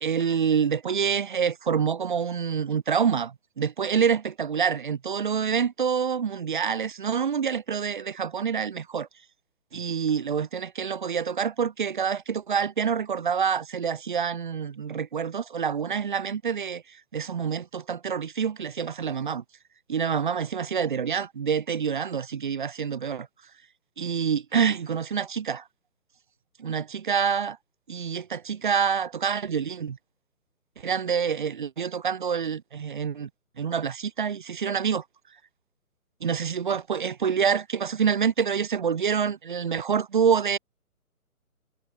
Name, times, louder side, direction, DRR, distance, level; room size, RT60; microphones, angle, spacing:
voice 1, 0.0-9.1 9.7-16.8 17.1-19.4 19.9-23.3 24.0-25.6 26.6-27.6 27.9-30.0 30.8-33.3 33.6-35.0 36.2-40.6, right 7 dB, 35° right, 0.7 m, -27 dB
figure-of-eight pair, 140°, 45 cm